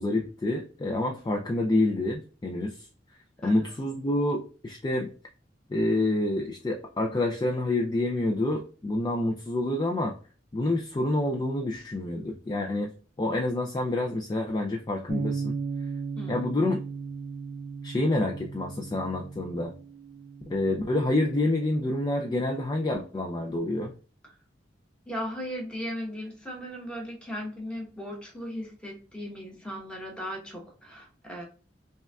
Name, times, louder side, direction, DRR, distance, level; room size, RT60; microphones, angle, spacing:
voice 1, 0.0-2.9 3.4-5.1 5.7-10.1 10.5-12.9 13.2-15.5 16.3-16.8 17.8-19.7 20.5-23.9, left 2 dB, 25° left, 2 dB, 0.3 m, -27 dB
voice 2, 3.4-3.7 16.2-16.5 25.1-31.4, equal, 5° left, -1 dB, 1.0 m, -37 dB
Bass guitar, 15.1-21.3, right 5 dB, 55° right, 0.5 m, -36 dB
5.2 x 2.3 x 2.3 m, 0.37 s
head